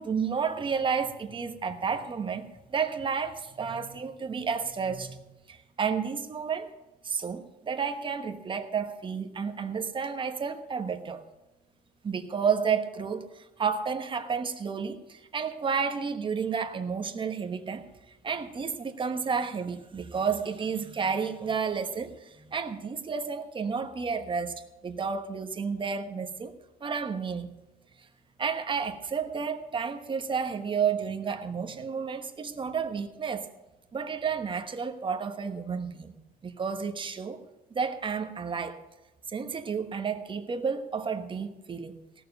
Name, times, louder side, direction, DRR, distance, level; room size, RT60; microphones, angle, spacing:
voice 1, 0.0-6.7 7.0-11.2 12.0-17.8 18.2-26.5 26.8-27.5 28.4-33.5 33.9-36.1 36.4-37.4 37.7-38.8 39.3-42.0, right 6 dB, 30° right, 6 dB, 1.2 m, -31 dB
17.0 x 7.0 x 6.7 m, 1.0 s
cardioid pair, 110°, 17 cm